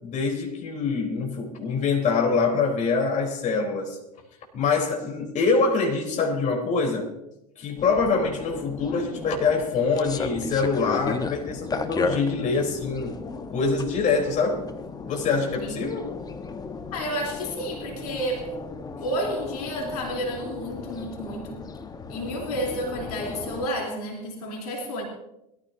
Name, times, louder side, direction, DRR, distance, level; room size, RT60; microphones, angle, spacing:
voice 1, 0.0-4.0 4.5-7.1 7.6-13.1 13.5-14.7 15.0-16.1, left 4 dB, 35° left, 3.9 m, -24 dB
sound 1, 7.8-23.7, left 4 dB, 20° left, 1.2 m, -35 dB
voice 2, 16.9-18.5 19.0-21.6 22.1-25.0, equal, 70° left, 3.6 m, -31 dB
23.0 x 14.5 x 2.8 m
hypercardioid pair, 85°, 20 cm